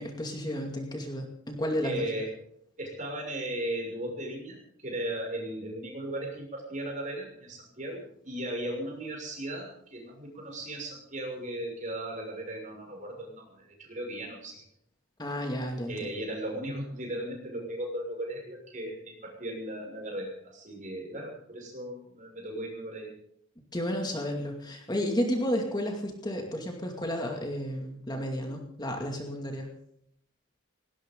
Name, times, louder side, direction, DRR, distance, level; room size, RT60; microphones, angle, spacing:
voice 1, 0.0-2.0 15.2-15.9 23.7-29.7, equal, 20° left, 2 dB, 2.4 m, -32 dB
voice 2, 1.8-2.3 2.8-14.6 15.9-23.1, right 1 dB, 40° right, 1 dB, 6.6 m, -37 dB
19.0 x 18.0 x 3.9 m, 0.69 s
head